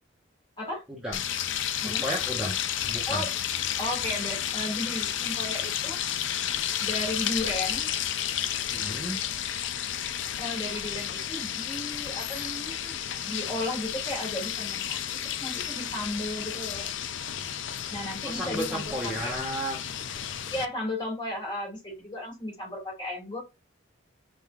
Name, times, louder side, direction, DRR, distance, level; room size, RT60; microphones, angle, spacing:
voice 1, 0.9-1.2 1.8-2.6 2.9-3.2 8.7-9.2 18.2-19.8, equal, 5° right, -5 dB, 1.0 m, -33 dB
sound 1, 1.1-20.7, left 10 dB, 70° left, 0.4 m, -32 dB
voice 2, 3.8-6.0 6.8-7.9 10.4-13.0 13.3-15.0 15.2-16.9 17.9-19.3 20.5-23.4, left 1 dB, 25° left, -1 dB, 2.1 m, -34 dB
5.1 x 3.6 x 2.4 m, 0.23 s
head